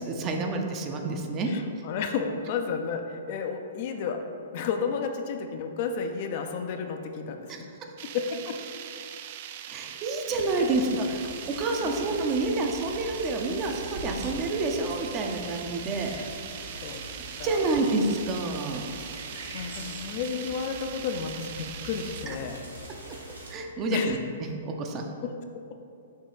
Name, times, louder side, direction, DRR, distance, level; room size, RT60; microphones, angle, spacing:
voice 1, 0.0-1.5 7.5-7.6 9.7-11.2 11.6-16.1 17.3-18.9 22.3-22.4 23.5-24.2 24.6-25.0, right 3 dB, 30° right, 2 dB, 0.7 m, -28 dB
voice 2, 1.5-4.2 4.5-7.7 8.1-8.6 10.5-10.6 16.0-16.3 16.8-17.0 17.4-17.8 19.5-22.6 23.9-24.2 25.2-25.3, left 6 dB, 45° left, 5 dB, 0.5 m, -32 dB
sound 1, 8.0-22.3, right 10 dB, 45° right, 0.3 m, -41 dB
sound 2, 10.3-23.5, right 1 dB, 80° right, 1.3 m, -42 dB
6.5 x 3.1 x 4.9 m, 2.4 s
figure-of-eight pair, 115°, 0 cm